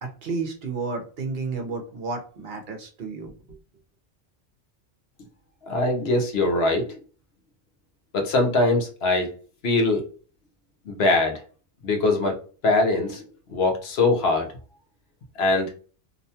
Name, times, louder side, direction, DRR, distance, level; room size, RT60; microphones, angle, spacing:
voice 1, 0.0-3.3, right 4 dB, 65° right, 3 dB, 0.9 m, -31 dB
voice 2, 5.7-6.9 8.1-9.3 9.6-10.0 10.9-11.4 11.8-12.4 12.6-13.2 13.5-14.5 15.4-15.7, left 2 dB, 70° left, 4 dB, 0.9 m, -22 dB
2.7 x 2.2 x 2.7 m, 0.39 s
omnidirectional pair, 1.1 m